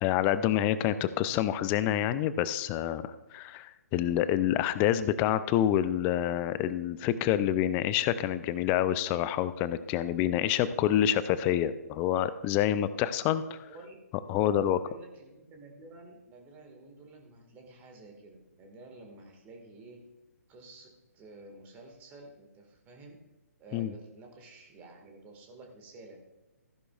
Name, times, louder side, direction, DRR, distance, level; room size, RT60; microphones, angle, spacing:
voice 1, 0.0-13.6 14.3-14.8 23.7-23.9, left 11 dB, 20° left, 14 dB, 0.4 m, -27 dB
voice 2, 13.6-14.0 14.3-20.0 20.5-20.9 21.1-23.2 23.6-26.2, right 2 dB, 20° right, 2 dB, 1.8 m, -50 dB
15.0 x 11.0 x 2.4 m, 1.1 s
figure-of-eight pair, 135°, 9 cm